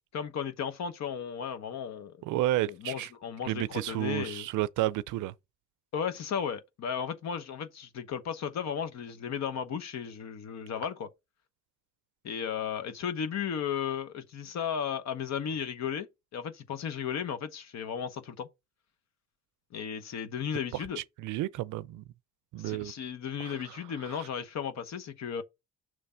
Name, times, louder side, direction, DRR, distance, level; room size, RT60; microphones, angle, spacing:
voice 1, 0.0-2.2 2.7-4.5 5.9-11.1 12.2-16.1 16.3-18.5 19.7-21.0 22.6-25.4, left 7 dB, 65° left, 0.9 m, -35 dB
voice 2, 2.2-3.1 3.4-5.3 20.7-22.0 22.5-22.9 23.4-24.3, right 15 dB, 80° right, 0.5 m, -32 dB
6.2 x 3.3 x 5.5 m
cardioid pair, 90°, 30 cm